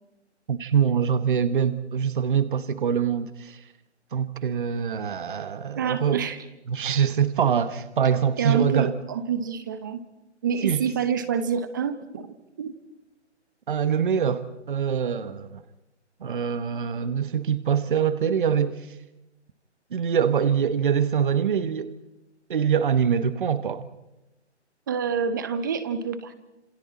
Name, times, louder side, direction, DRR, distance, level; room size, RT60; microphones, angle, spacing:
voice 1, 0.5-3.6 4.1-6.3 6.7-8.9 10.6-10.9 13.7-15.6 16.2-18.9 19.9-22.0 22.5-23.9, right 7 dB, 45° right, 13 dB, 1.2 m, -24 dB
voice 2, 5.8-6.4 8.4-10.0 10.4-12.7 24.9-26.3, right 7 dB, 15° right, 12 dB, 0.8 m, -27 dB
28.5 x 27.5 x 4.3 m, 0.95 s
hypercardioid pair, 155°, 35 cm